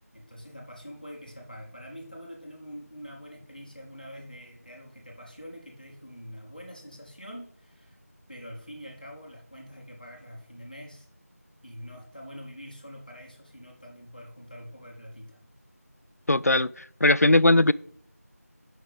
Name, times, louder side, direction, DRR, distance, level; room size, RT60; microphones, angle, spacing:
voice 1, 0.1-8.0 8.3-11.1 11.6-15.4, equal, 35° left, 1.3 m, -45 dB
voice 2, 16.3-17.7, left 2 dB, 70° left, 0.4 m, -20 dB
7.5 x 5.7 x 3.5 m
figure-of-eight pair, 180°, 9 cm